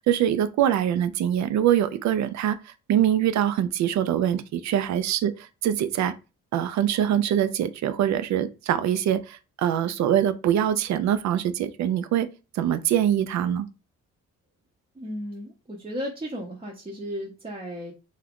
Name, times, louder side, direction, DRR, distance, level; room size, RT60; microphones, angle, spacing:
voice 1, 0.1-2.6 2.9-6.1 6.5-12.3 12.5-13.7, right 10 dB, 65° right, 0.5 m, -23 dB
voice 2, 14.9-17.9, equal, 20° right, 0.7 m, -35 dB
2.6 x 2.4 x 3.5 m
cardioid pair, 90°, 30 cm